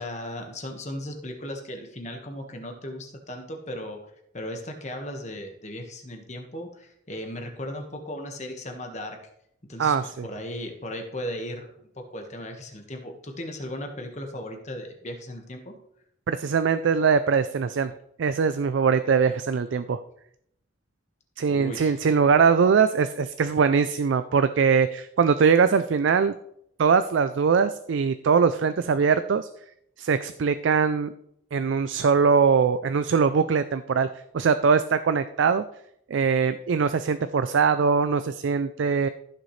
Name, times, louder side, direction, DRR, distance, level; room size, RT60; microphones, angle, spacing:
voice 1, 0.0-4.0 4.3-9.2 9.6-10.0 10.2-11.7 12.0-15.8 21.5-22.0, left 1 dB, 35° left, 3 dB, 1.4 m, -36 dB
voice 2, 9.8-10.3 16.3-17.9 18.2-20.0 21.4-26.3 26.8-29.5 30.0-31.1 31.5-34.1 34.3-35.6 36.1-39.1, right 5 dB, 75° right, 12 dB, 0.4 m, -22 dB
14.5 x 6.7 x 3.2 m, 0.74 s
head